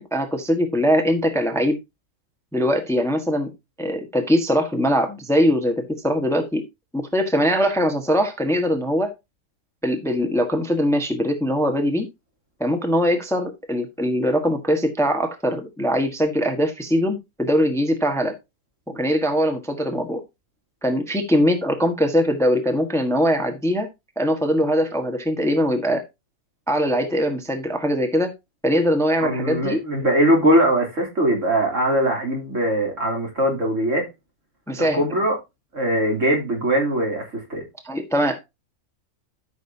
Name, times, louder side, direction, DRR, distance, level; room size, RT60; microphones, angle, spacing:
voice 1, 0.0-1.8 2.5-3.5 3.8-6.6 6.9-9.1 9.8-12.1 12.6-18.4 18.9-20.2 20.8-23.9 24.2-26.0 26.7-28.3 28.6-29.8 34.7-35.0 37.8-38.4, equal, ahead, 1.4 m, -21 dB
voice 2, 29.2-34.1 34.9-35.4 35.7-37.6, right 1 dB, 60° right, 3.8 m, -21 dB
13.0 x 6.3 x 2.8 m
omnidirectional pair, 1.5 m